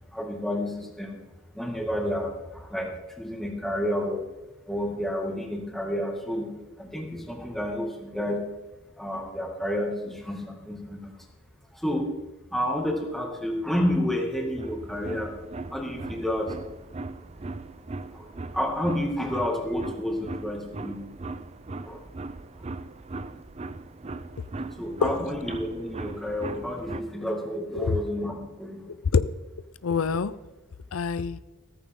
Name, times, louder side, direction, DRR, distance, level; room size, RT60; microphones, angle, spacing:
voice 1, 0.1-1.2 1.5-4.2 4.7-6.5 6.8-8.4 9.0-11.1 11.7-12.1 12.5-15.3 15.7-16.5 18.1-18.3 18.5-21.1 21.9-22.0 24.8-28.8, equal, ahead, 0 dB, 2.1 m, -30 dB
sound 1, 14.5-27.0, right 3 dB, 30° right, 0.5 m, -39 dB
voice 2, 28.9-29.3 29.8-30.3 30.9-31.4, left 5 dB, 85° left, 15 dB, 0.5 m, -25 dB
14.5 x 14.5 x 3.8 m, 1.1 s
head